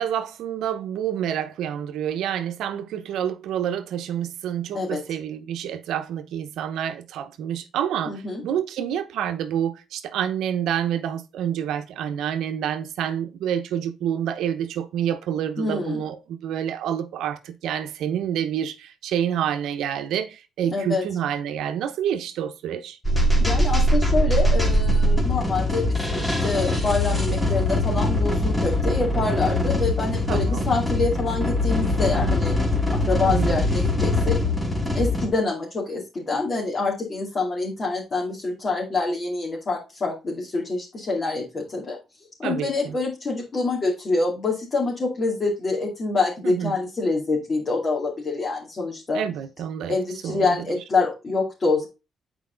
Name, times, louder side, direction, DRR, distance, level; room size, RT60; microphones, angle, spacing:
voice 1, 0.0-23.0 30.3-30.7 33.2-33.5 42.4-43.0 46.4-46.7 49.1-50.0 50.2-50.7, right 9 dB, 80° right, 0.8 m, -28 dB
voice 2, 8.1-8.4 15.6-16.0 20.7-21.0 23.4-32.5 32.9-34.4 34.9-42.0 42.4-49.2 49.9-51.9, left 3 dB, 35° left, 2.5 m, -26 dB
sound 1, 23.0-35.3, left 1 dB, 10° left, 2.2 m, -22 dB
8.2 x 4.7 x 3.8 m
cardioid pair, 90°, 0 cm